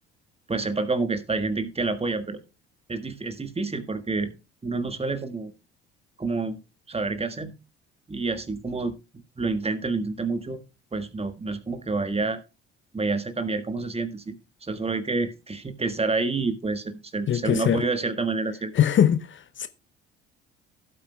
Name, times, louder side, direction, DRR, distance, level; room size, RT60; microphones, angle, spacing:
voice 1, 0.5-2.4 2.9-4.3 4.6-5.5 6.2-6.6 6.9-7.5 8.1-10.6 10.9-12.4 12.9-14.4 14.6-18.7, right 3 dB, 20° right, 1.5 m, -28 dB
voice 2, 17.3-17.8 18.7-19.7, left 9 dB, 40° left, 0.7 m, -22 dB
16.0 x 8.4 x 2.3 m
hypercardioid pair, 55°, 31 cm